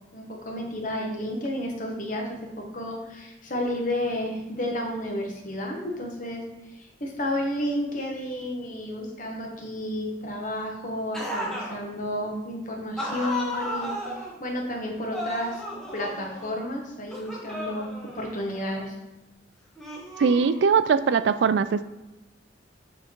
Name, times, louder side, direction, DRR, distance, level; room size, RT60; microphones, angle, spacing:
voice 1, 0.1-2.3 2.6-6.4 6.8-13.9 14.4-15.6 15.9-18.9, left 1 dB, 45° left, 0 dB, 1.3 m, -31 dB
sound 1, 11.1-11.8 13.0-14.3 15.1-16.6 17.1-18.9 19.8-20.9, equal, ahead, 1.1 m, -34 dB
voice 2, 20.2-21.8, right 6 dB, 65° right, 14 dB, 0.3 m, -21 dB
7.3 x 3.7 x 4.5 m, 1.0 s
head